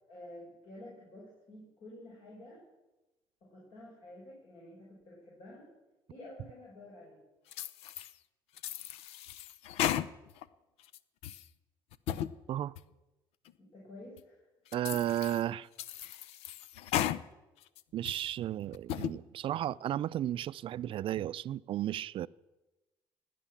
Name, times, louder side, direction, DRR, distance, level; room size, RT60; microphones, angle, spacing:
voice 1, 0.1-2.6 3.4-5.7 6.1-7.3 13.6-14.4, left 1 dB, 65° left, 6.4 m, -50 dB
sound 1, 7.5-8.1 8.6-10.5 10.8-11.5 11.9-12.3 12.8-12.9 13.5-13.6 14.2-14.3 14.7-15.4 15.8-17.2 17.6-18.3 18.7-19.1, left 11 dB, 85° left, 0.6 m, -35 dB
voice 2, 14.7-15.7 17.9-22.3, right 12 dB, 60° right, 0.5 m, -34 dB
17.0 x 10.0 x 7.3 m
cardioid pair, 90°, 10 cm